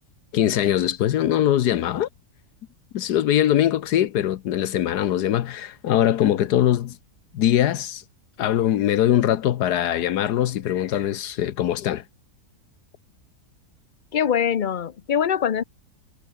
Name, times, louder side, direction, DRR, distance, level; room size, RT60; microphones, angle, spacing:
voice 1, 0.3-2.1 2.9-7.0 7.3-8.0 8.4-12.0, left 11 dB, 80° left, 1.4 m, -22 dB
voice 2, 14.1-15.6, left 8 dB, 55° left, 0.5 m, -23 dB
omnidirectional pair, 1.7 m